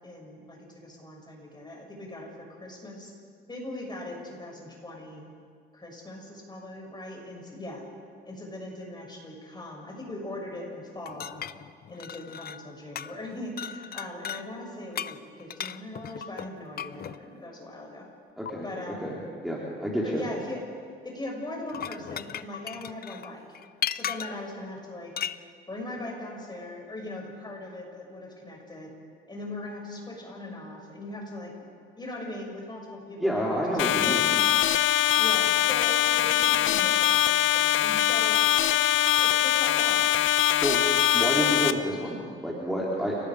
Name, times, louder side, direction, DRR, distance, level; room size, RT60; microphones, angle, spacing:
voice 1, 0.0-3.1 3.5-5.3 5.7-7.8 8.2-11.4 11.9-18.1 18.6-19.1 20.0-20.6 21.0-23.4 23.9-25.1 25.7-28.9 29.3-31.5 32.0-34.4 35.1-38.5 39.2-40.1, left 1 dB, 20° left, -1 dB, 6.8 m, -40 dB
sound 1, 11.1-12.7 13.0-13.3 13.6-14.4 15.0-17.2 18.5-18.6 21.5-24.5 25.2-25.4, left 9 dB, 50° left, 0.6 m, -36 dB
voice 2, 18.4-18.7 19.0-19.2 19.4-20.2 33.2-34.4 40.6-43.2, equal, ahead, -5 dB, 3.8 m, -29 dB
sound 2, 33.8-41.7, left 12 dB, 80° left, 0.9 m, -22 dB
30.0 x 18.5 x 5.1 m, 2.1 s
cardioid pair, 90°, 20 cm